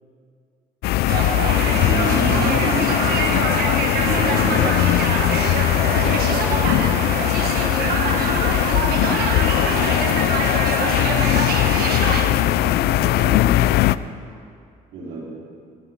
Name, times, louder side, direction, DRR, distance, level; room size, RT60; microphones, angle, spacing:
sound 1, 0.8-14.0, left 15 dB, 70° left, 0.4 m, -20 dB
sound 2, 1.1-12.2, right 5 dB, 65° right, 1.5 m, -25 dB
voice 1, 1.6-3.4 3.8-4.8 5.8-6.9 7.4-10.2 10.9-11.4 12.0-13.7 14.9-15.3, right 2 dB, 80° right, -8 dB, 4.1 m, -30 dB
20.5 x 11.5 x 3.7 m, 2.3 s
cardioid pair, 110°, 17 cm